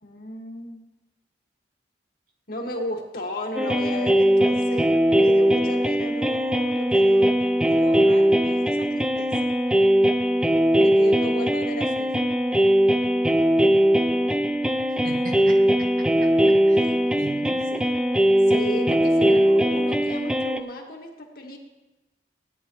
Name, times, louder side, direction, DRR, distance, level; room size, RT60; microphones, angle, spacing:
voice 1, 0.0-0.9 2.5-7.3 7.7-9.5 10.8-12.1 17.7-17.9 18.5-21.6, left 1 dB, 60° left, 0 dB, 1.9 m, -34 dB
sound 1, 3.6-20.6, equal, 5° right, 0.4 m, -20 dB
voice 2, 14.9-17.6, right 1 dB, 55° right, 1 dB, 1.8 m, -39 dB
17.0 x 9.8 x 3.2 m, 1.1 s
head